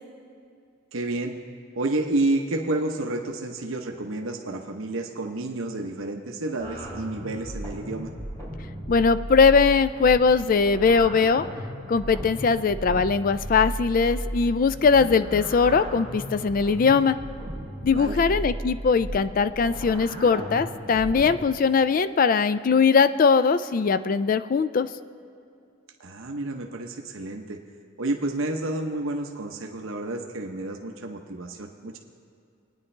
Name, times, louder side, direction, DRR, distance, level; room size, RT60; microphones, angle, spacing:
voice 1, 0.9-1.3 1.8-8.1 17.9-18.2 26.0-27.6 28.0-32.0, right 2 dB, 80° right, 2 dB, 0.9 m, -30 dB
sound 1, 6.6-21.4, equal, 15° left, 3.4 m, -35 dB
voice 2, 8.9-11.4 11.9-17.2 17.8-24.9, left 5 dB, 40° left, 13 dB, 0.3 m, -20 dB
22.0 x 9.7 x 3.3 m, 2.5 s
head